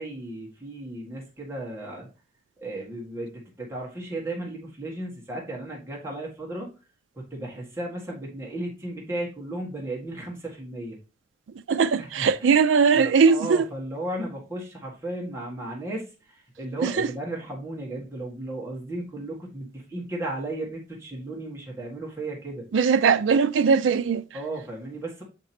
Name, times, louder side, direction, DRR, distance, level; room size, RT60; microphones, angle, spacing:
voice 1, 0.0-2.1 2.6-6.7 7.1-11.0 12.0-12.3 12.9-22.6 24.3-25.2, right 1 dB, 15° right, 1.7 m, -35 dB
voice 2, 11.7-13.7 16.8-17.1 22.7-24.2, right 5 dB, 80° right, 0.4 m, -20 dB
6.6 x 5.2 x 2.8 m
head